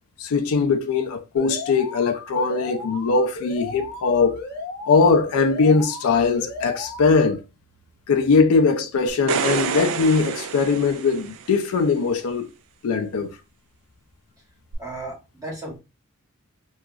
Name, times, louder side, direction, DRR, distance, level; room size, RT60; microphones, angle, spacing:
voice 1, 0.2-4.4 4.9-7.4 8.1-12.5 12.8-13.4, left 4 dB, 75° left, 0.4 m, -20 dB
Alarm, 1.4-7.4, left 3 dB, 45° left, 0.7 m, -36 dB
sound 1, 9.1-11.6 14.7-14.8, right 7 dB, 65° right, 0.3 m, -28 dB
voice 2, 14.8-15.8, right 2 dB, 15° right, 1.0 m, -35 dB
2.8 x 2.3 x 2.4 m
head